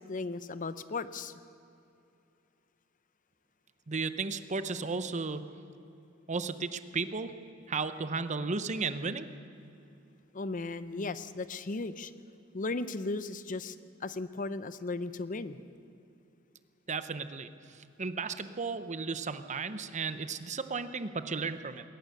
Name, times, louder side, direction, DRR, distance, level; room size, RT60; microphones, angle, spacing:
voice 1, 0.1-1.3 10.3-12.1 12.5-13.8 14.0-15.6, left 3 dB, 40° left, 13 dB, 0.7 m, -36 dB
voice 2, 3.9-5.5 6.3-7.3 7.7-9.3 16.9-17.5 18.0-21.8, right 4 dB, 35° right, 11 dB, 0.8 m, -34 dB
21.5 x 18.5 x 6.7 m, 2.8 s
head